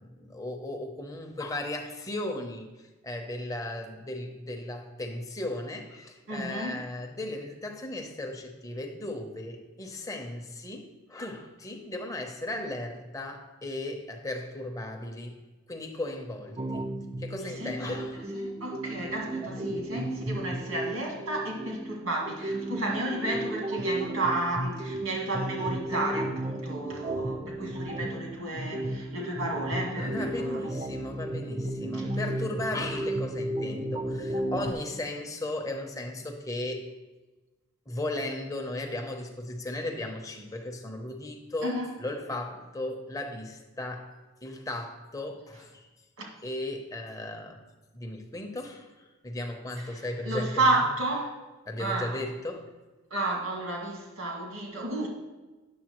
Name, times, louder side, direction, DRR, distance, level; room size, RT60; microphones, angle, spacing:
voice 1, 0.0-15.3 15.7-16.9 17.2-18.2 30.0-36.9 37.9-44.1 44.4-45.9 46.4-47.6 47.9-50.6 51.7-52.7, left 1 dB, 15° left, 3 dB, 0.7 m, -36 dB
voice 2, 6.3-6.8 17.4-18.0 18.3-30.7 31.9-32.1 41.6-41.9 46.2-46.3 49.9-51.4 51.8-52.2 53.1-55.1, right 2 dB, 85° right, -1 dB, 2.0 m, -32 dB
sound 1, 16.6-34.7, right 1 dB, 20° right, 0.4 m, -34 dB
9.4 x 6.9 x 3.0 m, 1.2 s
head